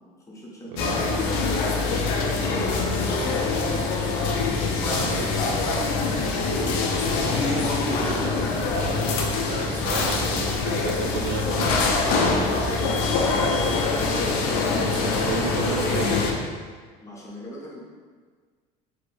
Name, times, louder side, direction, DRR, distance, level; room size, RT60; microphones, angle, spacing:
voice 1, 0.0-1.5 2.3-4.0 6.5-6.7 7.3-9.4 11.9-13.1 17.0-17.8, left 1 dB, 20° left, -4 dB, 0.6 m, -37 dB
voice 2, 0.7-1.3 4.8-5.6 6.5-8.5 9.4-11.9 14.7-16.3, right 5 dB, 80° right, 3 dB, 0.4 m, -33 dB
sound 1, 0.8-16.3, left 3 dB, 80° left, 0.5 m, -24 dB
3.2 x 2.6 x 2.5 m, 1.5 s
cardioid pair, 135°, 17 cm